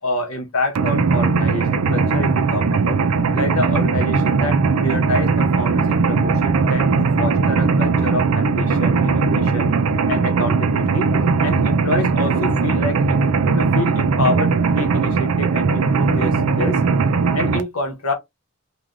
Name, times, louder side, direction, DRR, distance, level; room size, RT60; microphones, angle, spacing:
voice 1, 0.0-3.0 3.3-9.7 10.1-11.1 11.4-13.3 13.5-16.8 17.3-18.1, left 2 dB, 75° left, 0.9 m, -27 dB
Mechanisms, 0.8-17.6, right 4 dB, 80° right, 0.4 m, -18 dB
3.2 x 2.3 x 2.5 m
head